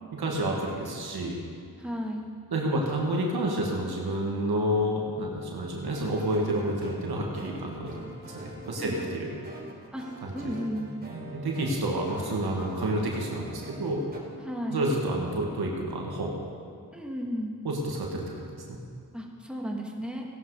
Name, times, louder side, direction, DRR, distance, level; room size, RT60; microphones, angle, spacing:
voice 1, 0.1-1.4 2.5-9.3 10.2-10.5 11.1-14.0 14.7-16.3 17.6-18.8, right 1 dB, 90° right, -1 dB, 2.0 m, -29 dB
voice 2, 1.8-2.3 8.8-9.0 9.9-10.1 10.3-10.9 14.4-14.9 16.9-17.5 19.1-20.2, equal, 5° right, -1 dB, 2.5 m, -34 dB
sound 1, 5.8-14.2, right 2 dB, 25° right, 3.8 m, -44 dB
16.5 x 11.5 x 5.0 m, 2.2 s
cardioid pair, 40°, 37 cm